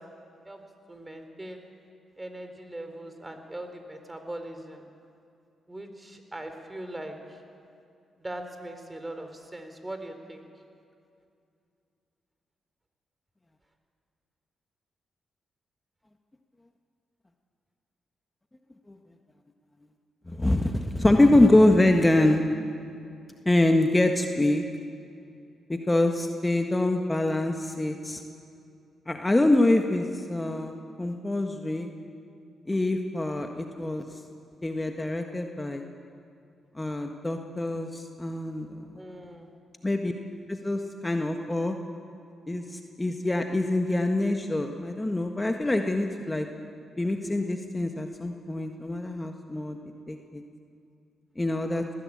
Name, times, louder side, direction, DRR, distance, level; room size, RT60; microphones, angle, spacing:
voice 1, 0.9-1.7 2.2-4.9 5.7-7.2 8.2-10.5 39.0-39.6, right 1 dB, 20° right, 6 dB, 3.7 m, -40 dB
voice 2, 20.3-22.4 23.4-24.6 25.7-28.2 29.1-31.9 32.7-34.1 34.6-35.8 36.7-39.0 39.8-40.1 40.5-41.8 42.5-46.5 47.0-49.8 50.1-50.4 51.4-51.8, left 1 dB, 20° left, 4 dB, 1.5 m, -25 dB
20.0 x 15.5 x 8.7 m, 2.5 s
hypercardioid pair, 45°, 0 cm